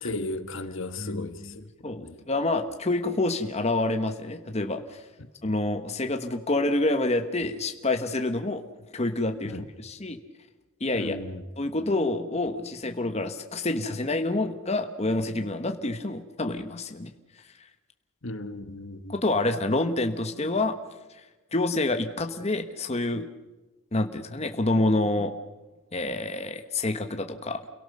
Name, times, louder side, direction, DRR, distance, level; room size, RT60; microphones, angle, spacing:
voice 1, 0.0-1.4 2.0-2.1 5.2-5.3 9.4-9.6 10.9-11.4 18.2-19.1, left 2 dB, 60° left, 1.4 m, -35 dB
voice 2, 1.0-5.0 5.4-8.6 8.9-10.2 10.8-11.2 11.6-17.1 19.1-20.8 21.5-23.3 23.9-25.3 25.9-27.6, left 2 dB, 30° left, 1.2 m, -27 dB
29.0 x 17.5 x 6.7 m
head